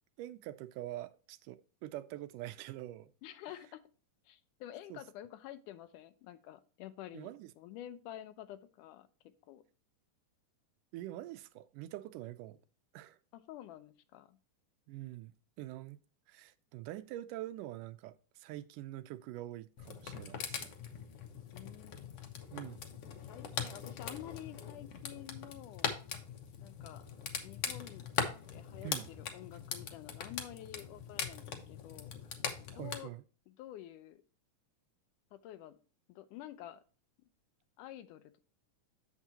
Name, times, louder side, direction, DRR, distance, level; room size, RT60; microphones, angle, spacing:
voice 1, 0.2-3.1 4.9-5.0 7.1-7.5 10.9-12.6 12.9-13.2 14.9-15.3 15.6-16.0 16.3-20.7 22.5-22.8 28.8-29.1 32.7-33.2, right 14 dB, 85° right, 2.2 m, -45 dB
voice 2, 3.2-3.8 4.3-7.3 7.6-9.1 9.5-9.6 13.3-14.4 21.5-22.2 23.1-25.9 26.6-27.1 27.4-28.0 28.5-32.1 32.7-33.1 33.5-34.2 35.3-35.8 36.1-36.8 37.8-38.5, left 12 dB, 80° left, 2.2 m, -49 dB
sound 1, 19.8-33.0, left 7 dB, 60° left, 1.6 m, -41 dB
8.1 x 7.3 x 2.8 m
omnidirectional pair, 3.7 m